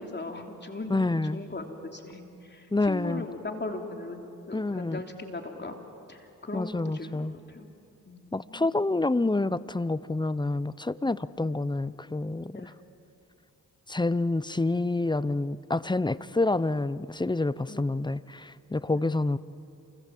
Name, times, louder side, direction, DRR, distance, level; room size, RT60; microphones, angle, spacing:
voice 1, 0.0-5.8 6.1-7.7 8.1-8.7 12.5-12.7 17.7-17.8 18.9-19.0, left 2 dB, 30° left, 3 dB, 3.2 m, -39 dB
voice 2, 0.9-1.4 2.7-3.3 4.5-5.0 6.5-7.3 8.3-12.7 13.9-19.4, left 2 dB, 15° left, 17 dB, 0.7 m, -28 dB
28.5 x 25.5 x 7.6 m, 2.7 s
cardioid pair, 55°, 34 cm